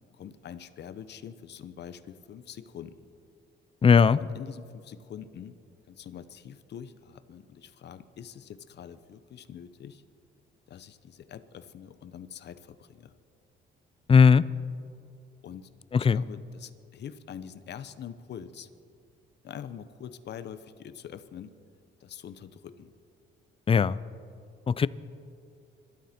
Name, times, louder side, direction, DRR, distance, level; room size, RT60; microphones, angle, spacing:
voice 1, 0.1-3.1 4.2-5.6 5.9-10.0 10.7-13.1 15.4-15.7 16.0-18.7 19.4-21.5 22.0-22.9, left 8 dB, 60° left, 12 dB, 0.8 m, -44 dB
voice 2, 3.8-4.2 14.1-14.5 15.9-16.2 23.7-24.0 24.7-24.9, left 6 dB, 30° left, 18 dB, 0.4 m, -18 dB
26.0 x 12.5 x 4.4 m, 2.6 s
cardioid pair, 90°, 20 cm